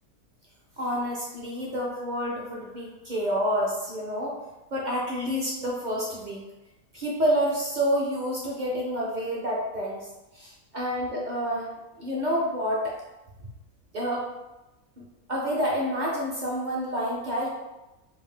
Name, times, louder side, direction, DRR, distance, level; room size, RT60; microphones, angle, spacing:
voice 1, 0.8-4.4 4.7-6.4 6.9-10.1 10.3-11.7 12.0-12.9 13.9-14.3 15.0-15.1 15.3-17.5, equal, 50° right, -4 dB, 0.5 m, -28 dB
3.4 x 2.6 x 3.5 m, 1.0 s
omnidirectional pair, 1.5 m